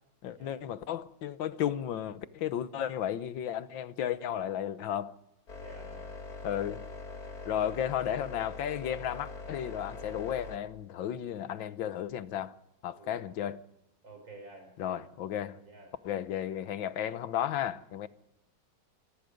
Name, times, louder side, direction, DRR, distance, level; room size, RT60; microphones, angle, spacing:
voice 1, 0.2-5.1 6.4-6.8 7.4-12.5 12.8-13.6 14.8-15.6 16.0-18.1, left 10 dB, 85° left, 1.7 m, -34 dB
sound 1, 5.5-10.6, left 3 dB, 50° left, 3.1 m, -43 dB
voice 2, 5.6-6.1 13.0-13.2 14.0-15.1 15.5-15.9, right 2 dB, 85° right, 7.1 m, -51 dB
26.5 x 19.0 x 5.2 m
omnidirectional pair, 2.0 m